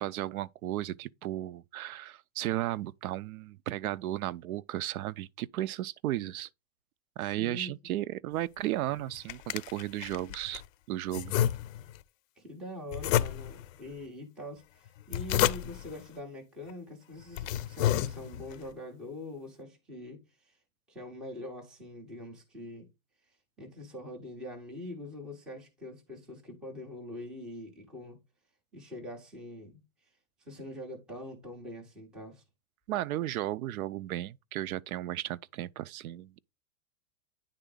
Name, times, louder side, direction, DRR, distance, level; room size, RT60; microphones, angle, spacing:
voice 1, 0.0-6.5 7.2-10.6 10.9-11.4 32.9-36.4, right 14 dB, 80° right, 0.5 m, -34 dB
voice 2, 7.2-7.7 12.4-20.6 20.9-22.9 23.3-28.2 28.7-29.8 30.4-32.4, left 1 dB, ahead, 0.4 m, -44 dB
sound 1, 8.9-10.7 11.1-12.0 12.9-13.7 14.9-15.9 16.7-16.8 17.2-18.6, left 12 dB, 65° left, 0.5 m, -30 dB
9.1 x 3.7 x 3.7 m
supercardioid pair, 165°, 42 cm